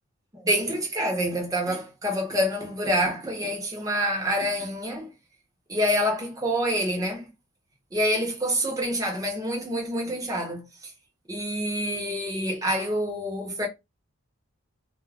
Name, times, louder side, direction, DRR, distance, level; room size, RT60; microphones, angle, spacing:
voice 1, 0.3-5.1 5.7-7.3 7.9-10.7 11.3-13.7, equal, 15° right, 0.7 m, -27 dB
2.3 x 2.1 x 3.3 m
head